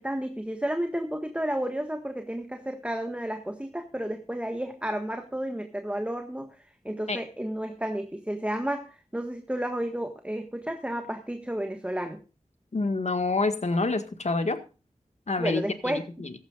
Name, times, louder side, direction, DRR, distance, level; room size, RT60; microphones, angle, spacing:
voice 1, 0.0-6.5 6.8-12.2 15.4-16.0, right 1 dB, 10° right, 5 dB, 1.6 m, -32 dB
voice 2, 12.7-14.6 15.3-16.3, left 3 dB, 60° left, 8 dB, 1.8 m, -27 dB
16.0 x 14.5 x 2.5 m, 0.34 s
wide cardioid pair, 60°, 13 cm